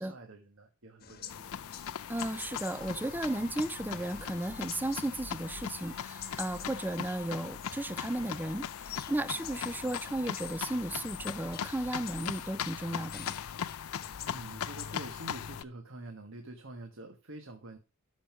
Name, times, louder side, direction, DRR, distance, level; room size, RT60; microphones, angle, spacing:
voice 1, 0.0-1.5 14.2-17.8, right 1 dB, 60° right, 1.6 m, -46 dB
sound 1, 1.0-15.5, left 10 dB, 45° left, 1.2 m, -49 dB
sound 2, 1.3-15.6, left 8 dB, 75° left, 0.5 m, -40 dB
voice 2, 2.1-13.3, right 1 dB, 10° right, 0.5 m, -35 dB
sound 3, 2.1-5.4 5.6-9.0, right 4 dB, 40° right, 1.3 m, -58 dB
13.5 x 5.6 x 6.0 m
head